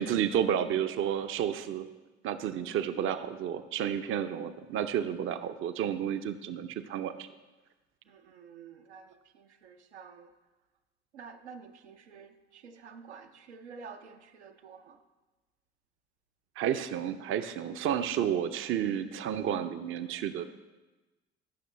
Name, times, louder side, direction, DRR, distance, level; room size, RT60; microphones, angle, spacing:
voice 1, 0.0-1.9 2.2-7.3 16.6-20.7, right 9 dB, 40° right, 10 dB, 0.6 m, -31 dB
voice 2, 8.1-10.3 11.1-15.0, right 5 dB, 75° right, 5 dB, 0.7 m, -50 dB
16.0 x 6.5 x 3.3 m, 1.1 s
figure-of-eight pair, 55°, 34 cm